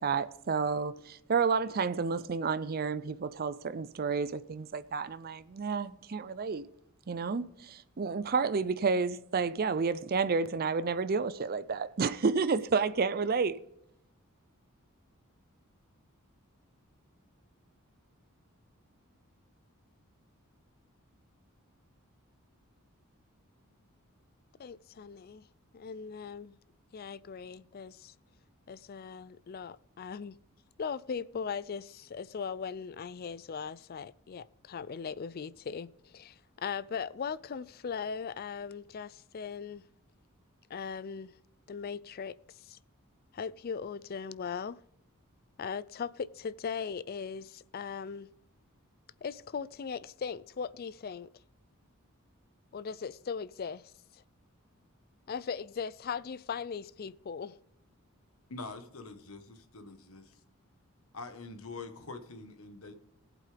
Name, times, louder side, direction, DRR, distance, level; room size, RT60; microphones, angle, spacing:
voice 1, 0.0-6.6 7.1-13.6, right 5 dB, 45° right, 0.5 m, -30 dB
voice 2, 24.6-25.5 25.7-26.6 26.9-28.1 28.7-30.4 30.8-39.8 40.7-41.3 41.7-42.8 43.3-44.8 45.6-48.3 49.2-51.3 52.7-54.2 55.3-57.6, left 6 dB, 45° left, 0.4 m, -39 dB
voice 3, 58.5-60.4 61.1-62.9, left 3 dB, 75° left, 1.5 m, -45 dB
18.5 x 8.3 x 3.4 m
head